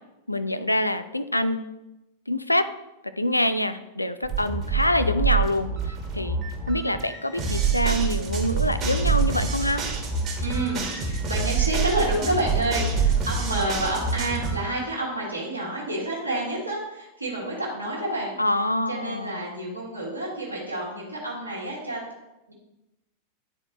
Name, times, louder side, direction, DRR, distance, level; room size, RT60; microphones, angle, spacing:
voice 1, 0.3-1.7 2.3-2.7 3.2-6.4 6.7-9.8 18.4-19.4, left 1 dB, 85° left, 12 dB, 0.4 m, -25 dB
sound 1, 4.2-14.6, right 5 dB, 30° right, 1.5 m, -26 dB
voice 2, 10.4-22.0 22.5-22.6, right 1 dB, 80° right, -5 dB, 1.5 m, -29 dB
9.6 x 4.4 x 3.0 m, 0.96 s
figure-of-eight pair, 90°, 0 cm